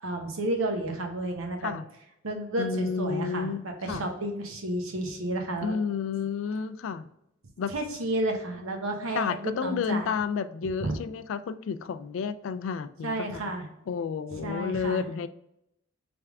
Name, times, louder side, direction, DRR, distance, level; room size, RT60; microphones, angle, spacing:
voice 1, 0.0-1.7 2.2-5.7 7.7-10.1 10.8-11.0 13.0-13.7 14.3-15.0, right 1 dB, 85° right, 3 dB, 0.9 m, -31 dB
voice 2, 2.6-4.0 5.6-7.1 7.6-7.7 9.1-13.5 13.9-15.3, left 6 dB, 65° left, 11 dB, 0.3 m, -31 dB
3.5 x 3.3 x 3.5 m, 0.80 s
head